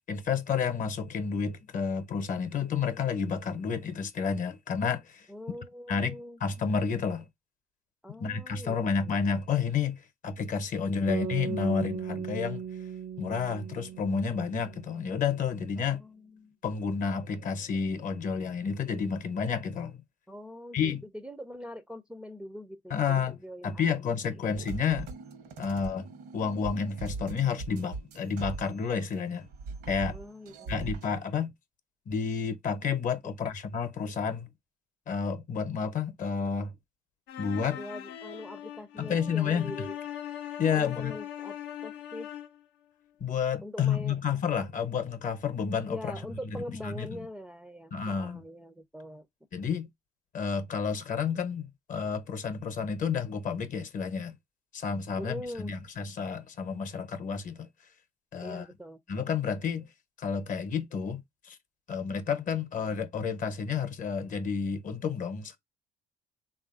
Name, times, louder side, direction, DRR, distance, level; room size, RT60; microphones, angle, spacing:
voice 1, 0.1-5.3 5.9-7.3 8.2-12.6 13.2-16.0 16.6-20.0 20.7-21.1 22.9-25.1 25.6-26.1 26.3-29.5 29.9-30.2 30.7-31.5 32.1-34.5 35.1-36.7 37.4-37.8 39.0-39.9 40.6-41.2 43.2-46.6 46.8-47.2 47.9-48.4 49.5-49.9 50.3-54.4 54.7-57.7 58.3-58.7 59.1-59.9 60.2-61.6 61.9-65.6, left 6 dB, 50° left, 0.7 m, -30 dB
voice 2, 5.3-6.4 8.0-9.1 15.8-16.6 20.3-24.1 30.1-30.9 33.2-33.3 37.7-40.0 40.7-41.6 41.8-42.3 43.6-44.2 45.9-49.3 55.2-55.7 58.4-59.0, equal, 5° right, 0.4 m, -43 dB
sound 1, 11.1-15.3, right 7 dB, 60° right, 0.5 m, -37 dB
sound 2, 24.5-29.2 29.4-31.1, right 4 dB, 80° right, 0.9 m, -41 dB
sound 3, 37.3-42.6, left 11 dB, 85° left, 0.5 m, -40 dB
3.4 x 2.4 x 2.4 m
cardioid pair, 110°, 17 cm